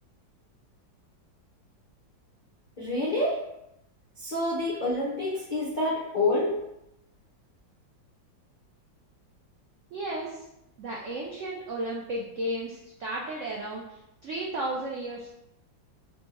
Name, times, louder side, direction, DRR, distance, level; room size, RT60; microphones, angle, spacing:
voice 1, 2.8-3.4 4.2-6.6, left 2 dB, 70° left, -6 dB, 0.4 m, -27 dB
voice 2, 9.9-10.4 10.8-15.3, right 1 dB, 75° right, -3 dB, 0.6 m, -34 dB
4.3 x 2.2 x 4.5 m, 0.85 s
omnidirectional pair, 2.0 m